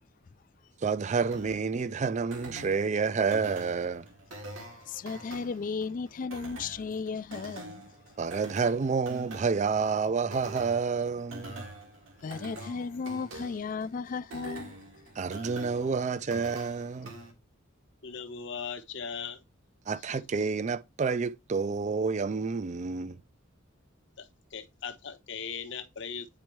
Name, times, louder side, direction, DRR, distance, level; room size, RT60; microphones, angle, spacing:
voice 1, 0.8-4.0 8.2-11.7 15.2-17.1 19.9-23.2, right 5 dB, 35° right, 0.4 m, -29 dB
sound 1, 1.3-17.3, right 2 dB, 80° right, 2.2 m, -45 dB
voice 2, 4.9-8.0 12.2-14.8, left 5 dB, 40° left, 0.3 m, -35 dB
voice 3, 18.0-19.4 20.0-20.3 24.2-26.3, left 6 dB, 65° left, 1.0 m, -39 dB
9.4 x 4.3 x 3.1 m
head